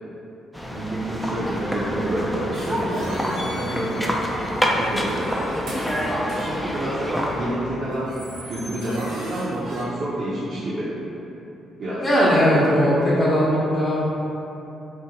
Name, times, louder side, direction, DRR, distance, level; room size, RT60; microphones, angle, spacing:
sound 1, 0.5-7.7, equal, 5° left, 0.3 m, -27 dB
voice 1, 0.7-4.1 4.6-5.4 6.1-8.1 8.4-10.9 11.8-12.1, right 1 dB, 45° right, -10 dB, 0.6 m, -28 dB
sound 2, 2.5-9.8, equal, 75° right, 0.9 m, -38 dB
voice 2, 12.0-14.0, equal, 30° left, -8 dB, 1.0 m, -18 dB
2.7 x 2.1 x 3.9 m, 2.9 s
cardioid pair, 90°, 0 cm